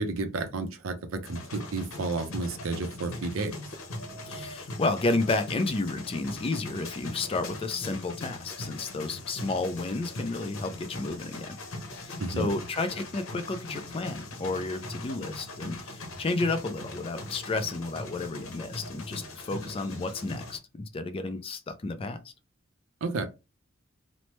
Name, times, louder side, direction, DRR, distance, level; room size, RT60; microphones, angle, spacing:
voice 1, 0.0-3.5 12.2-12.5 23.0-23.2, right 3 dB, 75° right, 0.6 m, -31 dB
sound 1, 1.2-20.6, left 2 dB, 85° left, 0.8 m, -41 dB
voice 2, 4.2-11.6 11.9-22.3, left 3 dB, 25° left, 0.3 m, -31 dB
3.1 x 2.1 x 3.0 m
head